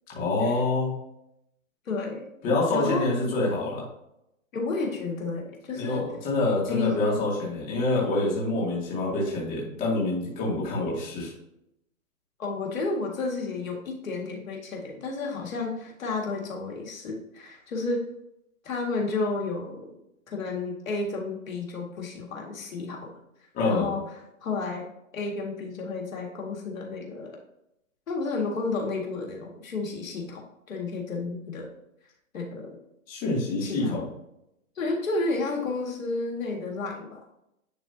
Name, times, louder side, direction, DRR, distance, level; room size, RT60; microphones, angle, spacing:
voice 1, 0.1-0.9 2.4-3.8 5.7-11.3 23.5-23.9 33.1-34.0, left 2 dB, 20° left, -5 dB, 2.3 m, -26 dB
voice 2, 1.9-2.3 2.7-3.1 4.5-6.0 6.7-7.1 12.4-18.1 18.6-20.0 20.3-23.1 23.6-24.0 24.4-27.4 28.1-31.7 32.3-32.8 33.6-34.0 34.8-37.2, left 3 dB, 70° left, 0 dB, 2.0 m, -31 dB
10.5 x 3.8 x 2.7 m, 0.81 s
hypercardioid pair, 150°, 41 cm